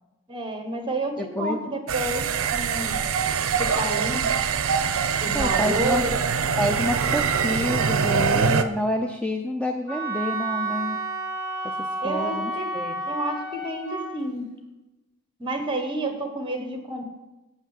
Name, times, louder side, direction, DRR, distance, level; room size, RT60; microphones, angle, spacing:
voice 1, 0.3-3.0 3.6-4.2 5.2-6.2 12.0-12.7 13.0-14.5 15.4-17.0, right 1 dB, 20° right, 5 dB, 1.2 m, -30 dB
voice 2, 1.2-1.6 5.3-6.0 6.6-11.0 11.8-13.0, left 1 dB, 5° left, 4 dB, 0.4 m, -28 dB
sound 1, 1.9-8.6, right 6 dB, 65° right, 0.5 m, -24 dB
Wind instrument woodwind instrument, 9.9-14.1, right 2 dB, 80° left, 2.3 m, -30 dB
8.0 x 5.9 x 7.3 m, 1.0 s
head